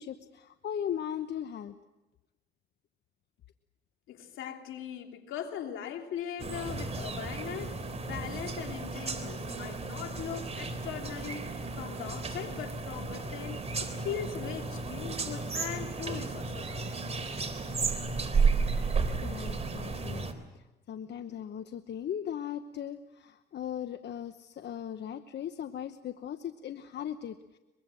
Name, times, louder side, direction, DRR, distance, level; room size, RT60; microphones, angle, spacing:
voice 1, 0.0-1.8 19.2-27.6, left 9 dB, 60° left, 10 dB, 1.0 m, -38 dB
voice 2, 4.1-16.7, left 8 dB, 85° left, 4 dB, 3.1 m, -40 dB
sound 1, 6.4-20.3, right 4 dB, 30° right, 3.4 m, -33 dB
23.5 x 22.5 x 7.7 m, 1.0 s
cardioid pair, 90°, 20 cm